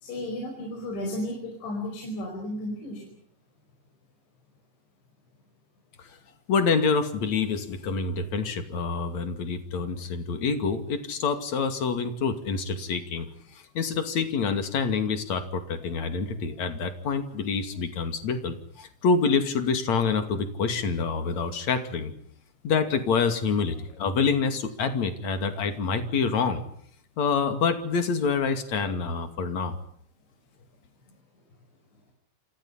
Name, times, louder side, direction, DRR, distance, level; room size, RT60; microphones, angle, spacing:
voice 1, 0.0-3.1, left 1 dB, 80° left, 1 dB, 7.5 m, -33 dB
voice 2, 6.5-13.3 13.7-22.1 22.6-26.6 27.2-29.7, left 5 dB, 45° left, 8 dB, 3.2 m, -27 dB
28.5 x 28.0 x 5.8 m, 0.64 s
omnidirectional pair, 5.2 m